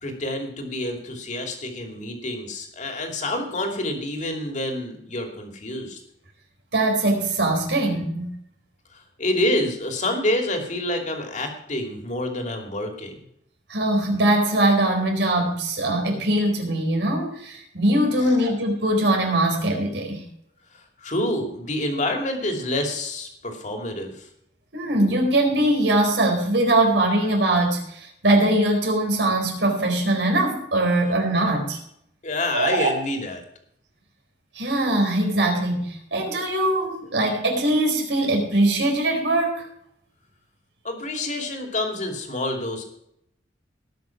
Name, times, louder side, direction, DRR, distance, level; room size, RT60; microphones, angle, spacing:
voice 1, 0.0-6.0 9.2-13.2 18.2-18.3 21.0-24.3 32.2-33.4 40.8-42.8, left 1 dB, 45° left, 3 dB, 2.6 m, -27 dB
voice 2, 6.7-8.3 13.7-20.2 24.7-31.8 32.5-32.9 34.5-39.6, right 1 dB, 80° right, 2 dB, 4.5 m, -21 dB
19.0 x 6.4 x 5.9 m, 0.73 s
head